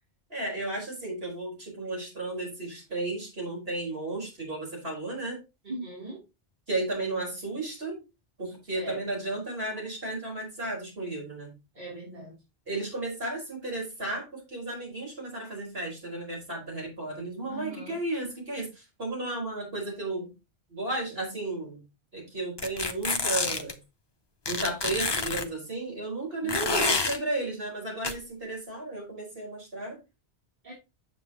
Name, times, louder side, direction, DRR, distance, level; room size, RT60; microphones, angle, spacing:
voice 1, 0.3-5.4 6.7-8.0 8.4-11.5 12.7-20.3 20.7-21.8 22.1-23.7 24.5-30.0, right 2 dB, 60° right, 5.0 m, -34 dB
voice 2, 5.6-6.2 8.7-9.0 11.7-12.4 17.5-18.0 19.2-19.5 26.4-26.8 30.6-30.7, right 1 dB, 45° right, 3.6 m, -40 dB
sound 1, 22.6-23.7 24.5-25.5 26.5-27.2 28.0-28.1, left 3 dB, 30° left, 0.6 m, -28 dB
9.0 x 7.4 x 3.0 m
omnidirectional pair, 1.1 m